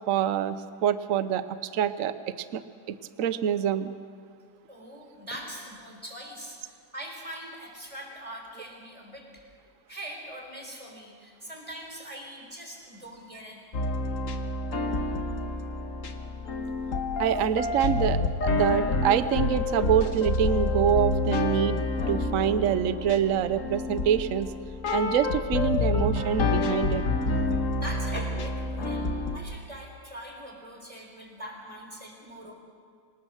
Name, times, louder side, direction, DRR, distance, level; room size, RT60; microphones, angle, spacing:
voice 1, 0.1-0.6 0.8-1.4 1.7-2.6 2.9-3.9 17.2-24.5 24.9-27.0, right 9 dB, 60° right, 12 dB, 1.0 m, -26 dB
voice 2, 4.7-9.5 9.9-13.6 27.8-29.0 29.3-32.5, equal, 20° right, 1 dB, 4.0 m, -42 dB
sound 1, 13.7-29.4, left 3 dB, 55° left, 1.5 m, -28 dB
25.0 x 19.5 x 6.4 m, 2.1 s
omnidirectional pair, 1.8 m